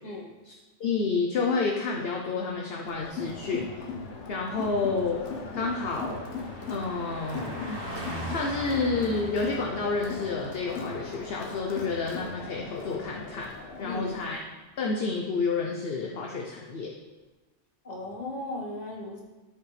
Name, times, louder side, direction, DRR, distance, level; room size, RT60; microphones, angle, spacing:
voice 1, 0.8-3.9 4.3-5.2 5.5-6.3 6.7-7.8 8.3-13.5 13.8-14.4 14.8-16.9, left 4 dB, 60° left, 0 dB, 1.0 m, -29 dB
Car passing by, 2.1-13.9 14.2-14.4, right 1 dB, 70° right, 2.2 m, -44 dB
Crowd, 2.9-14.4, left 4 dB, 90° left, 1.2 m, -39 dB
voice 2, 13.8-14.2 17.8-19.2, left 2 dB, 35° left, -2 dB, 1.7 m, -36 dB
13.0 x 5.6 x 3.4 m, 1.2 s
omnidirectional pair, 1.2 m